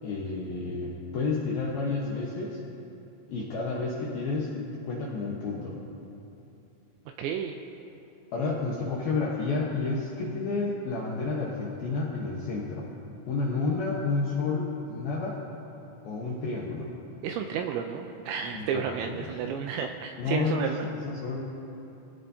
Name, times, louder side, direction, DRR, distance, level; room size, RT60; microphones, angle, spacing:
voice 1, 0.0-2.6 3.3-4.6 4.8-5.8 8.3-12.9 13.3-15.4 16.0-16.9 18.5-19.6 20.2-21.4, left 3 dB, 70° left, -4 dB, 2.3 m, -30 dB
voice 2, 7.2-7.5 17.2-20.9, right 7 dB, 85° right, 4 dB, 2.6 m, -32 dB
23.5 x 17.5 x 2.8 m, 2.9 s
omnidirectional pair, 6.0 m